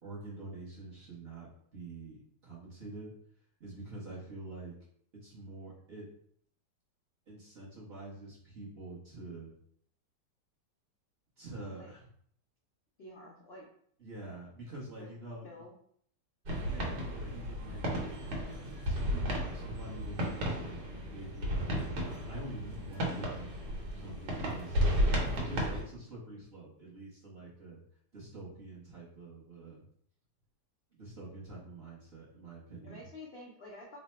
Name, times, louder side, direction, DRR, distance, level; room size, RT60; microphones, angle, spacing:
voice 1, 0.0-3.1 3.6-4.8 5.2-6.1 7.3-9.5 11.4-12.1 14.0-15.6 16.6-17.9 18.8-23.5 23.9-27.8 28.1-29.8 30.9-33.0, right 2 dB, 45° right, -6 dB, 0.8 m, -46 dB
voice 2, 13.0-13.7 15.0-15.1 15.4-15.7 32.8-34.0, left 1 dB, 80° left, -2 dB, 0.5 m, -49 dB
sound 1, 16.4-25.8, equal, 80° right, 1.5 m, -33 dB
3.2 x 2.0 x 4.1 m, 0.64 s
omnidirectional pair, 1.9 m